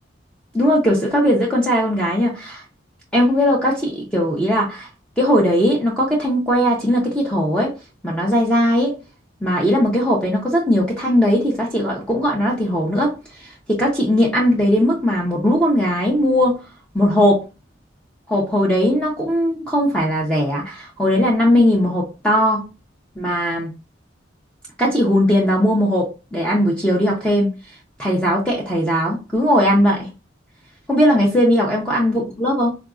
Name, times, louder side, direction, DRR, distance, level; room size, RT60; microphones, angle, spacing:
voice 1, 0.5-2.6 3.1-4.9 5.2-7.7 8.0-9.0 9.4-16.6 16.9-17.4 18.3-22.6 23.2-23.7 24.8-27.5 28.0-30.1 30.9-32.7, equal, 5° left, 0.6 m, -18 dB
3.9 x 2.4 x 2.3 m
head